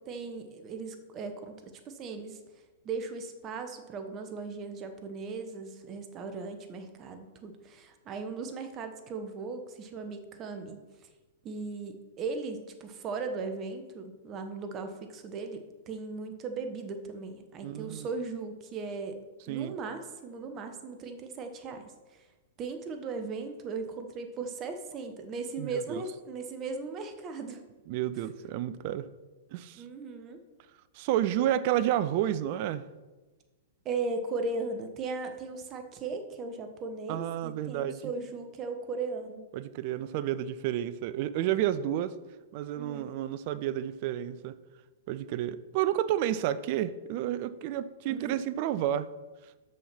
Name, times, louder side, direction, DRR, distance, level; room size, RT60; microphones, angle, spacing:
voice 1, 0.1-2.4 2.8-10.8 11.4-19.2 19.5-22.2 22.6-27.6 29.8-30.4 33.8-39.4 42.8-43.1 48.1-48.3, right 4 dB, 30° right, 7 dB, 1.1 m, -37 dB
voice 2, 17.6-18.1 19.5-19.8 25.6-26.0 27.9-29.1 29.5-29.8 30.9-32.8 37.1-38.1 39.5-42.2 42.5-44.5 45.1-49.1, right 12 dB, 45° right, 15 dB, 0.5 m, -30 dB
6.3 x 6.3 x 5.9 m, 1.2 s
figure-of-eight pair, 110°, 0 cm